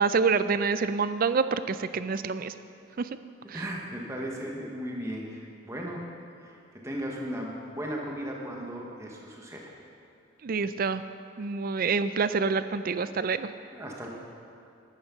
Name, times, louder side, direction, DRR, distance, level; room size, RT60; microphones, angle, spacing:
voice 1, 0.0-2.5 3.0-3.1 3.5-3.6 10.4-11.0 11.4-13.5, right 5 dB, 45° right, 12 dB, 0.4 m, -27 dB
voice 2, 3.5-6.0 6.4-6.6 6.8-9.7 13.7-14.1, equal, 15° right, -2 dB, 1.1 m, -36 dB
10.5 x 9.4 x 6.0 m, 2.5 s
head